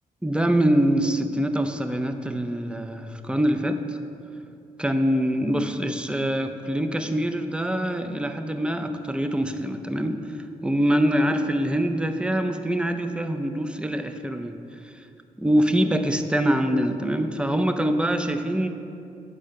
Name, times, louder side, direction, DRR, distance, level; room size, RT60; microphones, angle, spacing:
voice 1, 0.2-4.0 4.8-15.1 15.4-18.7, equal, 5° right, 7 dB, 0.5 m, -24 dB
6.4 x 4.3 x 5.1 m, 2.5 s
cardioid pair, 65°, 15 cm